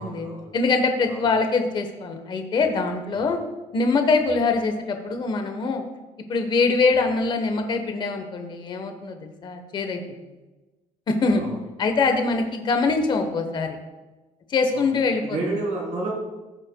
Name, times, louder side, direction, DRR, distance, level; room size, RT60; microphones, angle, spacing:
voice 1, 0.0-0.5 1.1-1.3 3.1-3.3 11.4-11.6 14.7-14.8 15.2-16.1, right 2 dB, 60° right, -2 dB, 3.1 m, -31 dB
voice 2, 0.5-3.4 3.7-5.8 6.3-10.0 11.1-11.4 11.8-13.8 14.5-15.6, left 4 dB, 35° left, 6 dB, 1.0 m, -23 dB
15.0 x 7.4 x 2.2 m, 1.2 s
cardioid pair, 165°, 14 cm